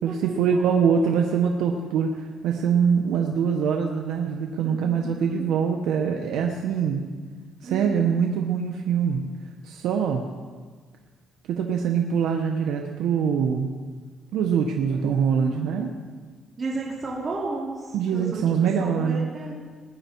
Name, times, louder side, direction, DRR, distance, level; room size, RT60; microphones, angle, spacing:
voice 1, 0.0-7.0 7.6-9.2 9.6-10.3 11.5-13.7 14.3-15.9 17.9-19.3, right 7 dB, 85° right, 2 dB, 1.0 m, -24 dB
voice 2, 4.6-5.2 7.6-8.2 14.9-15.0 15.4-15.7 16.6-18.4 18.8-19.5, right 3 dB, 40° right, -4 dB, 3.4 m, -33 dB
20.0 x 9.4 x 4.6 m, 1.5 s
cardioid pair, 90°, 0 cm